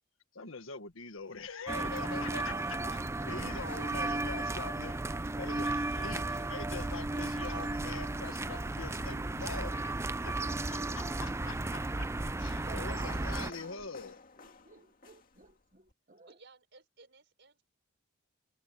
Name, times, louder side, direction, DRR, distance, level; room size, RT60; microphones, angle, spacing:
voice 1, 0.3-2.5 3.2-5.0 5.4-9.9 10.2-12.1 12.4-14.2, left 4 dB, 80° left, 1.7 m, -44 dB
sound 1, 0.9-15.9, left 3 dB, 45° left, 2.1 m, -57 dB
sound 2, 1.7-13.5, right 2 dB, 15° right, 0.4 m, -34 dB
voice 2, 2.1-3.0 3.4-4.3 12.7-13.8 14.6-16.4, right 4 dB, 40° right, 1.7 m, -51 dB
voice 3, 16.3-17.6, right 3 dB, 60° right, 5.5 m, -58 dB
head